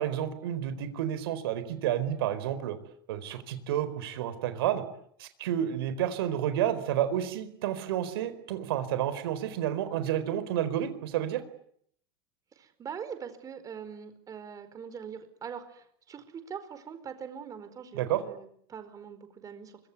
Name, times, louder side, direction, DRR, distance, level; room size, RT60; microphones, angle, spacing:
voice 1, 0.0-2.8 3.1-4.8 5.2-11.4 17.9-18.2, right 11 dB, 85° right, 12 dB, 4.5 m, -30 dB
voice 2, 12.6-19.7, right 7 dB, 30° right, 10 dB, 4.7 m, -42 dB
25.5 x 23.5 x 9.7 m, 0.68 s
supercardioid pair, 125°, 12 cm